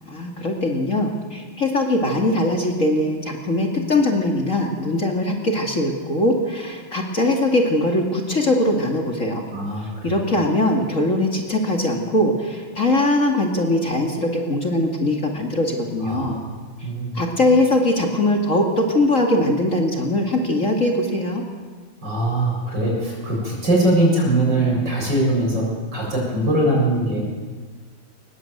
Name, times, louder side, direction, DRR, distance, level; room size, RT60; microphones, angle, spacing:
voice 1, 0.1-9.4 9.8-16.4 17.1-21.4, left 1 dB, 40° left, 1 dB, 2.5 m, -21 dB
voice 2, 9.5-10.1 16.0-16.5 16.8-17.2 22.0-25.7 25.9-27.2, right 1 dB, 55° right, -2 dB, 8.0 m, -21 dB
23.5 x 20.5 x 8.0 m, 1.5 s
omnidirectional pair, 2.3 m